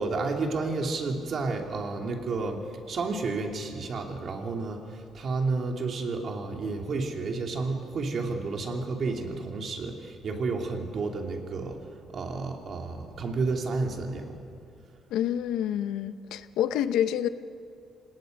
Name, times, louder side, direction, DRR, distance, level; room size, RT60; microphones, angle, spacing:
voice 1, 0.0-11.8 12.1-14.4, right 3 dB, 50° right, 2 dB, 2.6 m, -31 dB
voice 2, 15.1-17.3, left 10 dB, 90° left, 12 dB, 0.7 m, -27 dB
27.0 x 18.5 x 5.3 m, 2.4 s
cardioid pair, 120°, 0 cm